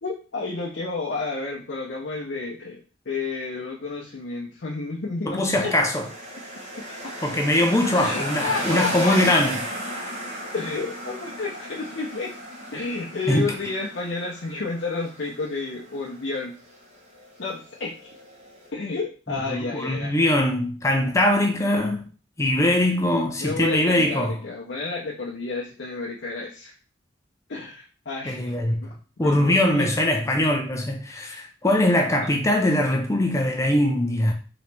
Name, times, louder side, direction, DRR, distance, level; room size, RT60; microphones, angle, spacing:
voice 1, 0.0-5.7 7.9-9.4 10.5-12.3 12.7-16.5 17.4-17.9 18.7-20.1 23.4-26.7 27.5-28.5 28.8-28.9 29.2-29.9, left 3 dB, 70° left, 0.6 m, -31 dB
voice 2, 5.3-6.1 7.2-9.6 13.3-13.5 19.3-22.0 22.4-24.3 28.3-28.9 29.2-34.3, left 1 dB, 15° left, 0.5 m, -22 dB
sound 1, 5.5-18.7, right 1 dB, 40° right, 1.0 m, -35 dB
3.8 x 3.0 x 3.3 m
head